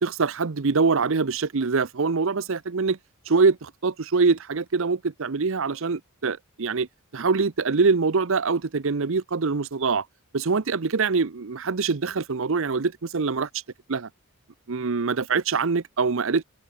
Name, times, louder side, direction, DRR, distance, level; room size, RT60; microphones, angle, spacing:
voice 1, 0.0-3.0 3.3-6.9 7.1-10.0 10.3-13.5 13.9-14.1 14.7-16.4, right 4 dB, 60° right, 0.7 m, -24 dB
head